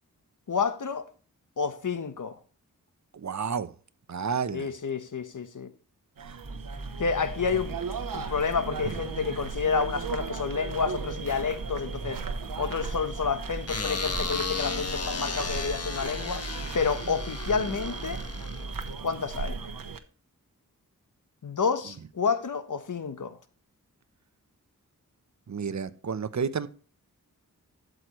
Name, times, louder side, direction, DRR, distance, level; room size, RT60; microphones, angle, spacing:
voice 1, 0.5-1.1 1.6-2.4 4.5-5.7 7.0-7.8 8.1-12.2 12.6-16.5 16.7-18.2 19.0-19.6 21.4-23.4, left 5 dB, 65° left, 1.2 m, -29 dB
voice 2, 3.1-3.7 4.1-4.7 6.2-6.4 25.5-26.7, right 6 dB, 55° right, 0.9 m, -31 dB
sound 1, 6.2-20.0, right 5 dB, 80° right, 1.1 m, -37 dB
sound 2, 6.4-18.9, right 2 dB, 40° right, 3.7 m, -40 dB
sound 3, 13.7-19.0, left 4 dB, 45° left, 1.4 m, -35 dB
13.0 x 7.8 x 3.2 m
wide cardioid pair, 85°, 34 cm